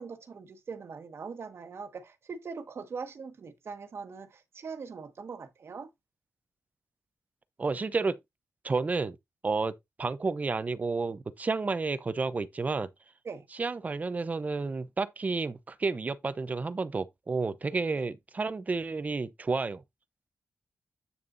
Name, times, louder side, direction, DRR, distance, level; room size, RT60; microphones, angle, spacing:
voice 1, 0.0-5.9 13.2-13.5, right 5 dB, 55° right, 1.5 m, -41 dB
voice 2, 7.6-8.2 8.6-9.2 9.4-12.9 13.6-19.8, right 4 dB, 30° right, 0.8 m, -31 dB
8.7 x 7.0 x 2.6 m
wide cardioid pair, 135°, 5 cm